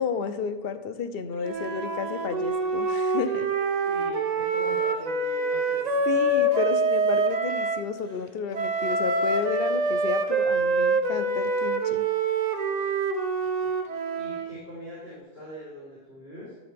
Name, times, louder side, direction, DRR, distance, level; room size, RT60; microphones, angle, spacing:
voice 1, 0.0-3.5 6.1-12.1, left 6 dB, 70° left, 9 dB, 0.9 m, -32 dB
Wind instrument woodwind instrument, 1.4-7.8 8.5-14.6, right 3 dB, 45° right, 0.7 m, -26 dB
voice 2, 3.8-6.3 13.3-13.8 14.1-16.5, left 1 dB, 75° right, -10 dB, 3.8 m, -43 dB
13.5 x 6.3 x 3.4 m, 1.2 s
omnidirectional pair, 1.0 m